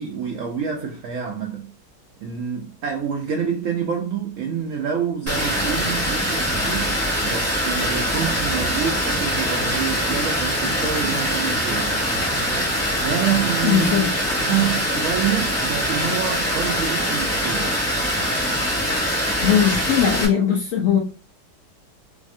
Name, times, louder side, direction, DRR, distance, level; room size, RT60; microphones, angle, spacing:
voice 1, 0.0-1.7 2.2-7.0 7.2-12.0 12.9-14.1 14.4-17.8, right 7 dB, 70° right, 0.8 m, -27 dB
Water, 5.3-20.2, equal, 10° left, 0.7 m, -23 dB
voice 2, 13.6-14.1 19.4-21.0, left 8 dB, 70° left, 0.8 m, -19 dB
3.3 x 2.2 x 2.6 m
omnidirectional pair, 1.8 m